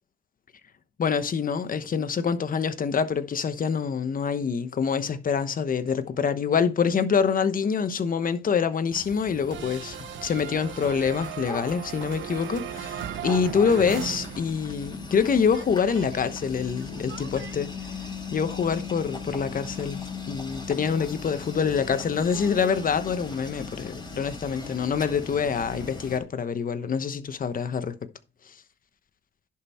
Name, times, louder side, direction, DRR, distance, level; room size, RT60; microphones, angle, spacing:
voice 1, 1.0-18.0 18.3-27.9, left 6 dB, 45° left, 1.1 m, -26 dB
sound 1, 8.9-26.2, left 3 dB, 20° left, 4.2 m, -39 dB
sound 2, 9.5-15.0 15.2-17.6, right 11 dB, 70° right, 0.7 m, -38 dB
11.0 x 5.6 x 4.3 m
cardioid pair, 90°, 20 cm